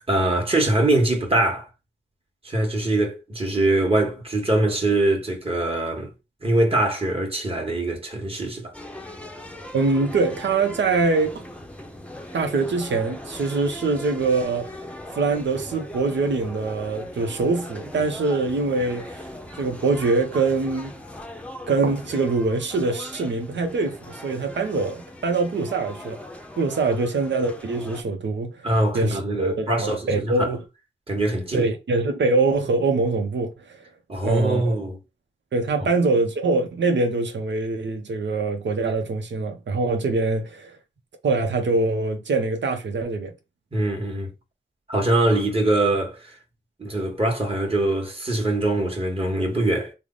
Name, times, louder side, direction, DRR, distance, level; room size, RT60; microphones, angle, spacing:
voice 1, 0.1-1.7 2.4-6.1 6.4-8.7 28.6-30.5 31.1-31.7 34.1-35.0 43.7-44.3 44.9-46.3 46.8-49.9, right 1 dB, 30° right, 1.3 m, -23 dB
sound 1, 8.7-28.0, left 1 dB, 5° left, 0.6 m, -39 dB
voice 2, 9.7-11.4 12.3-14.8 15.1-19.3 19.6-20.9 21.7-26.2 26.6-28.6 28.9-30.6 31.5-33.8 34.2-34.8 35.5-40.8 41.2-43.3, right 3 dB, 75° right, 0.7 m, -24 dB
3.3 x 2.0 x 3.7 m
cardioid pair, 65°, 19 cm